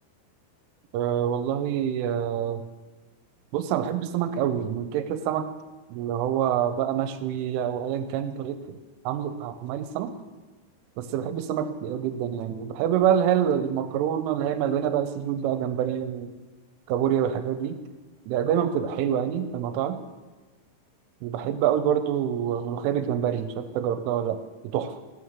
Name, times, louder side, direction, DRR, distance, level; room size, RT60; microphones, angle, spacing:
voice 1, 0.9-2.6 3.5-5.5 5.9-8.8 9.1-10.1 11.0-16.3 16.9-17.8 18.3-20.0 21.2-25.0, right 9 dB, 85° right, 9 dB, 3.1 m, -26 dB
12.5 x 6.4 x 7.2 m, 1.2 s
omnidirectional pair, 5.7 m